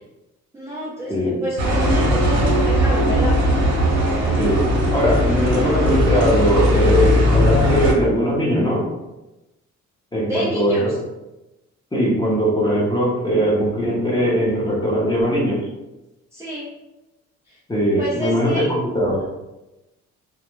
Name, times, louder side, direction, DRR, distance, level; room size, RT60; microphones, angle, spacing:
voice 1, 0.5-3.4 10.2-10.9 16.3-16.7 17.5-17.6 18.0-18.7, equal, 10° right, -7 dB, 0.5 m, -29 dB
voice 2, 1.1-1.4 4.4-8.9 10.1-10.8 11.9-15.7 17.7-19.3, equal, 15° left, -4 dB, 0.8 m, -20 dB
sound 1, 1.6-7.9, equal, 60° right, 1.0 m, -18 dB
2.3 x 2.0 x 3.0 m, 0.99 s
cardioid pair, 90°, 30 cm